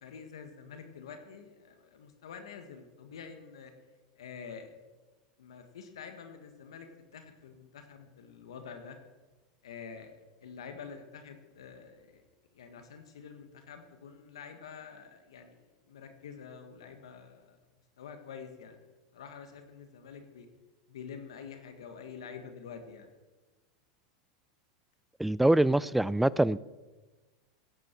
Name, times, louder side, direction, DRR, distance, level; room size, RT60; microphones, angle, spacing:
voice 1, 0.0-3.7 4.2-4.7 5.4-6.9 7.1-9.0 9.6-12.2 12.5-15.6 15.9-17.6 18.0-18.8 19.1-20.5 20.9-23.1, left 6 dB, 85° left, 1.5 m, -47 dB
voice 2, 25.2-26.6, right 1 dB, 5° right, 0.3 m, -24 dB
15.5 x 9.6 x 4.6 m
hypercardioid pair, 110°, 3 cm